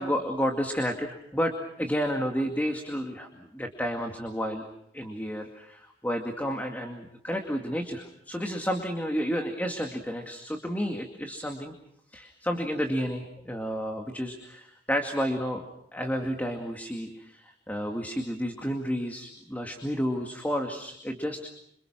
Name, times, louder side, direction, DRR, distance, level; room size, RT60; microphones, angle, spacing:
voice 1, 0.0-1.5 1.8-4.7 4.9-11.7 12.1-21.5, equal, 10° left, 3 dB, 2.2 m, -31 dB
27.5 x 27.0 x 6.0 m, 0.76 s
head